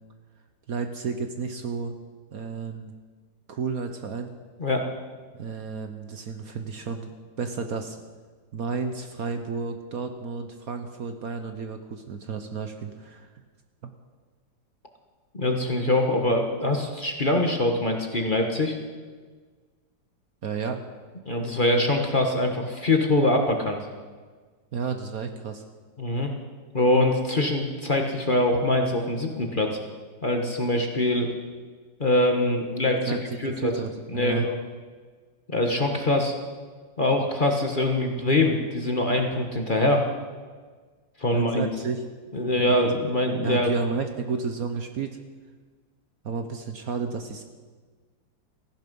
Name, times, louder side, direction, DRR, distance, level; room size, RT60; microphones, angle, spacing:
voice 1, 0.7-1.9 2.3-2.9 3.5-4.3 5.3-7.1 7.4-8.0 8.5-13.3 13.8-13.9 20.4-20.8 24.7-25.6 33.1-34.5 41.3-42.1 42.6-42.9 43.4-45.2 46.2-47.4, right 5 dB, 55° right, 7 dB, 1.3 m, -32 dB
voice 2, 15.3-18.8 21.3-23.8 26.0-26.3 26.7-29.8 30.2-31.3 32.0-33.2 33.4-33.7 34.1-34.5 35.5-36.3 37.0-40.1 41.2-41.7 42.3-43.7, left 1 dB, 30° left, 3 dB, 1.4 m, -23 dB
17.0 x 15.0 x 5.4 m, 1.5 s
omnidirectional pair, 2.0 m